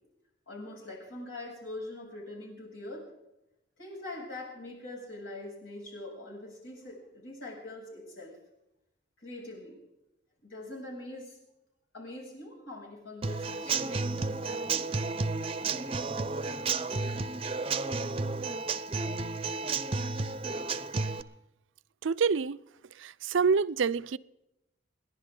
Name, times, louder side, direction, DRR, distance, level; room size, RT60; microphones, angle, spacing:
voice 1, 0.5-3.1 3.8-8.3 9.2-9.8 10.4-11.4 11.9-14.9, left 2 dB, 85° left, 7.5 m, -43 dB
Human voice / Acoustic guitar / Drum, 13.2-21.2, right 4 dB, 30° right, 0.6 m, -32 dB
voice 2, 22.0-22.6 23.0-24.2, right 5 dB, 80° right, 0.5 m, -27 dB
28.5 x 11.0 x 3.8 m
head